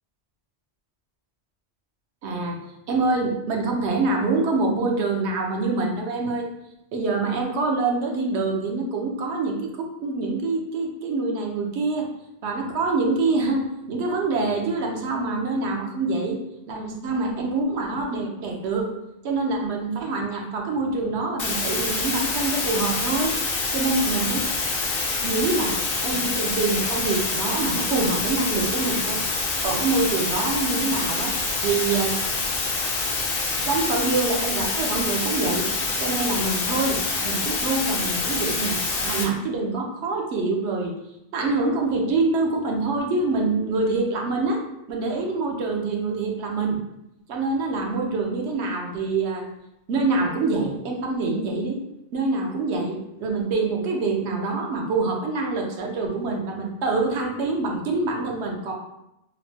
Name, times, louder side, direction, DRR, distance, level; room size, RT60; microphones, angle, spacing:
voice 1, 2.2-2.6 2.9-6.5 6.9-12.1 12.4-16.4 16.7-18.8 19.2-23.3 23.7-24.4 25.2-25.8 26.0-29.2 29.6-31.3 31.6-32.2 33.4-35.7 36.0-40.9 41.3-44.6 44.9-46.8 47.3-49.5 49.9-51.8 52.1-58.7, right 3 dB, 85° right, 1 dB, 0.9 m, -25 dB
sound 1, 21.4-39.2, left 3 dB, 65° left, 0.8 m, -26 dB
3.1 x 2.1 x 2.6 m, 0.88 s
omnidirectional pair, 1.1 m